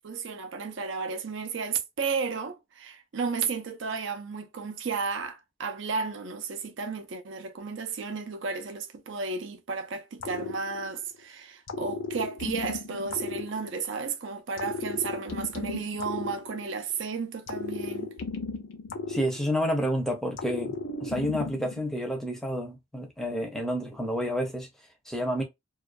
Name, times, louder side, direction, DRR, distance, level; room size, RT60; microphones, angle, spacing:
voice 1, 0.0-18.1, right 5 dB, 70° right, 0.5 m, -33 dB
sound 1, 10.2-11.2 11.7-14.1 14.6-17.0 17.5-19.9 20.4-21.8, left 4 dB, 80° left, 0.5 m, -35 dB
voice 2, 19.1-24.7 25.1-25.4, equal, ahead, 0.6 m, -29 dB
2.4 x 2.3 x 2.4 m
head